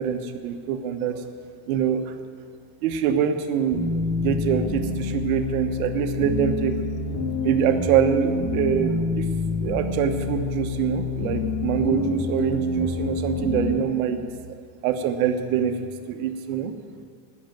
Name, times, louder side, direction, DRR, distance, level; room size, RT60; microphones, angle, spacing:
voice 1, 0.0-2.1 2.8-6.8 7.4-9.3 9.6-14.2 14.8-15.8 16.1-16.7, right 8 dB, 90° right, 7 dB, 1.2 m, -25 dB
sound 1, 3.7-13.7, left 3 dB, 60° left, 3.1 m, -27 dB
14.5 x 6.6 x 9.2 m, 2.1 s
supercardioid pair, 125°, 41 cm